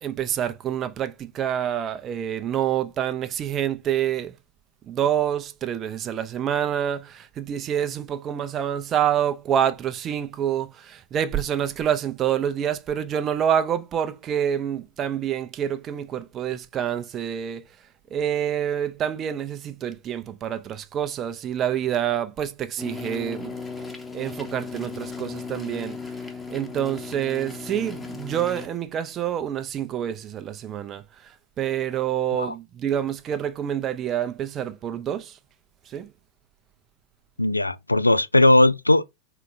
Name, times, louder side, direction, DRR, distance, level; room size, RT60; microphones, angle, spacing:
voice 1, 0.0-4.4 4.9-17.6 18.1-23.5 24.1-26.0 26.5-35.4 35.9-36.1, right 9 dB, 30° right, 0.5 m, -27 dB
sound 1, 22.8-28.7, left 4 dB, 10° left, 0.9 m, -36 dB
voice 2, 37.4-39.0, left 2 dB, 85° left, 0.3 m, -18 dB
3.9 x 3.8 x 3.3 m
figure-of-eight pair, 90°, 0 cm